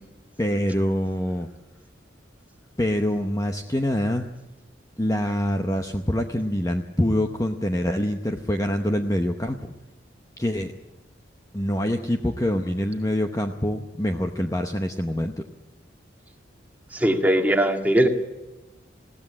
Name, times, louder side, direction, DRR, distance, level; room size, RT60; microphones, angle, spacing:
voice 1, 0.4-1.5 2.8-4.3 5.0-9.7 10.4-10.7 11.5-15.3, equal, 15° left, 5 dB, 0.9 m, -25 dB
voice 2, 16.9-18.1, right 1 dB, 10° right, 3 dB, 1.9 m, -20 dB
20.5 x 16.0 x 9.7 m, 1.1 s
head